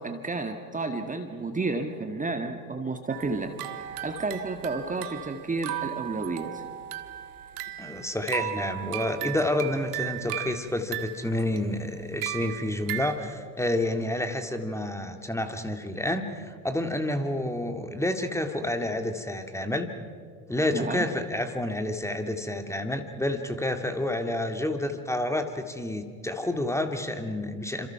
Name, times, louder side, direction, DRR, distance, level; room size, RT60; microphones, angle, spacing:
voice 1, 0.0-6.6 20.7-21.0, right 3 dB, 15° right, 6 dB, 1.7 m, -31 dB
sound 1, 3.1-13.2, right 15 dB, 70° right, 1.7 m, -36 dB
voice 2, 7.8-19.9 20.5-27.9, left 1 dB, 5° left, 6 dB, 2.1 m, -29 dB
28.0 x 26.5 x 5.9 m, 2.1 s
hypercardioid pair, 70°, 47 cm